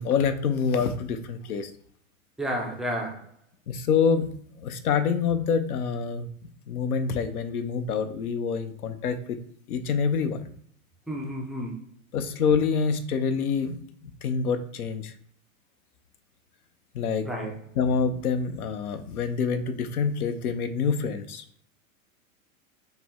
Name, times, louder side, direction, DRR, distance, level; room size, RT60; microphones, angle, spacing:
voice 1, 0.0-1.7 3.7-4.3 4.6-6.3 6.7-9.4 9.7-10.4 12.1-13.8 14.0-15.1 16.9-17.3 17.8-21.4, left 6 dB, 85° left, 9 dB, 0.8 m, -26 dB
voice 2, 2.4-3.3 11.1-11.8 17.2-17.5, equal, ahead, -1 dB, 0.3 m, -31 dB
5.6 x 2.2 x 3.6 m, 0.62 s
hypercardioid pair, 115°, 43 cm